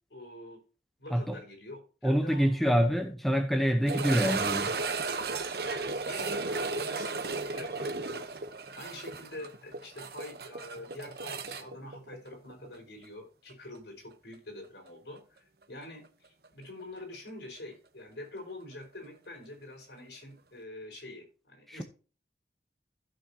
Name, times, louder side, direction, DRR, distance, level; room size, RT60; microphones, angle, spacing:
voice 1, 0.1-0.6 1.0-2.9 5.6-8.3 8.8-21.8, left 1 dB, 85° left, 4.7 m, -46 dB
voice 2, 2.0-4.8 21.7-21.8, equal, ahead, 0.9 m, -26 dB
sound 1, 3.9-12.8 13.0-13.1 13.8-13.9 16.4-16.5, right 4 dB, 60° right, 1.0 m, -34 dB
15.0 x 6.4 x 2.8 m
head